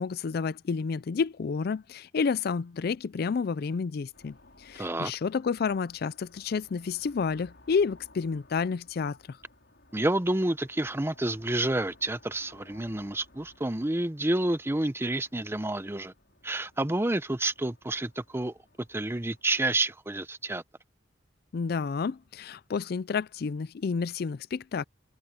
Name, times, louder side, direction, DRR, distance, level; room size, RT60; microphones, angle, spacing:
voice 1, 0.0-9.4 21.5-24.8, left 5 dB, 55° left, 0.4 m, -30 dB
sound 1, 4.1-19.6, left 2 dB, 75° left, 5.2 m, -59 dB
voice 2, 4.8-5.1 9.9-16.1 16.4-18.5 18.9-20.6, right 2 dB, 15° right, 0.7 m, -29 dB
head